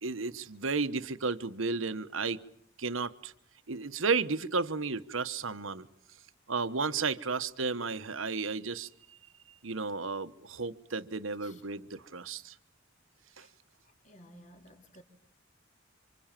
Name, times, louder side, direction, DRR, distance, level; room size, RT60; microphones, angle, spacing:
voice 1, 0.0-2.4 2.8-3.3 3.7-5.9 6.5-8.9 9.6-12.5 13.4-13.5, right 4 dB, 80° right, 1.2 m, -33 dB
voice 2, 13.8-15.0, equal, 40° left, 3.0 m, -55 dB
29.0 x 25.5 x 7.5 m
head